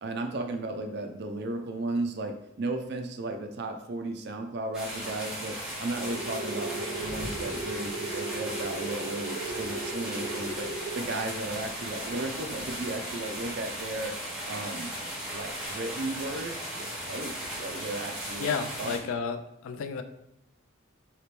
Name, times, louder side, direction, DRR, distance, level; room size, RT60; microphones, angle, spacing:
voice 1, 0.0-10.7 10.9-14.1 14.5-14.9 15.3-19.1, right 2 dB, 50° right, 5 dB, 0.4 m, -35 dB
sound 1, 4.7-19.0, right 1 dB, 5° right, 0.9 m, -37 dB
sound 2, 6.0-11.0, right 2 dB, 70° right, 0.8 m, -37 dB
voice 2, 18.4-20.0, left 5 dB, 75° left, 9 dB, 0.3 m, -32 dB
2.9 x 2.9 x 3.3 m, 0.85 s
head